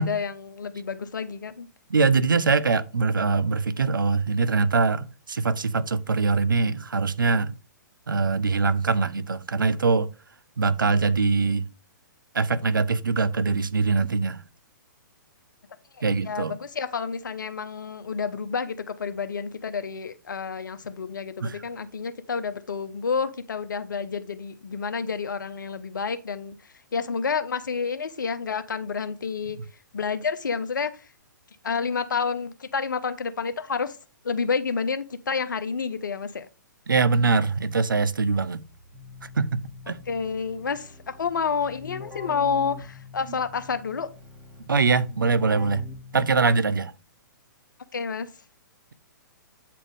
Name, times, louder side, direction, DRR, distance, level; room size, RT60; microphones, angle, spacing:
voice 1, 0.0-1.7 16.3-26.6 26.9-29.6 29.9-31.0 31.6-34.0 34.2-36.5 40.1-44.1 47.9-48.3, left 5 dB, 70° left, 0.8 m, -29 dB
voice 2, 1.9-7.5 8.1-10.1 10.6-11.7 12.3-14.4 16.0-16.5 21.4-21.6 36.9-38.6 39.4-40.0 44.7-45.8 46.1-46.9, right 4 dB, 80° right, 0.5 m, -23 dB
Keyboard (musical), 38.7-46.7, left 4 dB, 15° right, 2.7 m, -44 dB
8.3 x 4.3 x 3.5 m
figure-of-eight pair, 120°, 11 cm